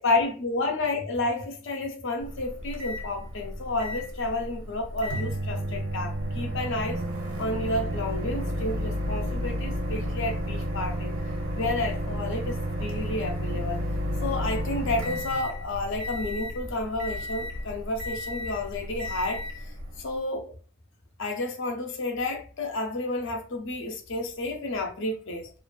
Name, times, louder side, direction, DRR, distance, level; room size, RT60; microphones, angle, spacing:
voice 1, 0.0-7.0 7.4-13.8 14.2-19.5 20.0-20.5 21.2-25.5, left 2 dB, 60° left, 0.6 m, -31 dB
Microwave oven, 2.2-20.2, equal, 85° right, 0.6 m, -32 dB
2.4 x 2.4 x 2.2 m
head